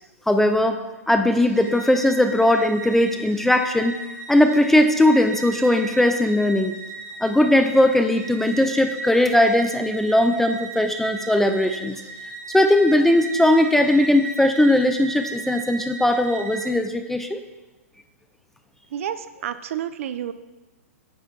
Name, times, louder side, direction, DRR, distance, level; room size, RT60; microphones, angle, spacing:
voice 1, 0.3-0.8 1.1-4.0 4.3-6.7 7.2-12.0 12.5-17.4, left 1 dB, 5° left, 6 dB, 0.3 m, -19 dB
sound 1, 1.3-16.7, right 4 dB, 85° right, 2.3 m, -36 dB
voice 2, 19.4-20.3, right 10 dB, 60° right, 12 dB, 0.5 m, -29 dB
9.1 x 5.6 x 3.5 m, 1.1 s
hypercardioid pair, 135°, 8 cm